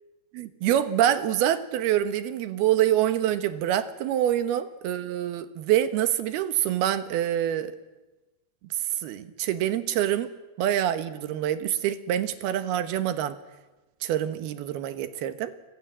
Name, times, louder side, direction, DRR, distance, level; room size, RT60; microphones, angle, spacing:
voice 1, 0.3-7.8 9.0-10.3 10.6-13.4 14.0-15.5, right 11 dB, 80° right, 12 dB, 3.2 m, -26 dB
29.5 x 25.5 x 7.5 m, 1.1 s
omnidirectional pair, 4.5 m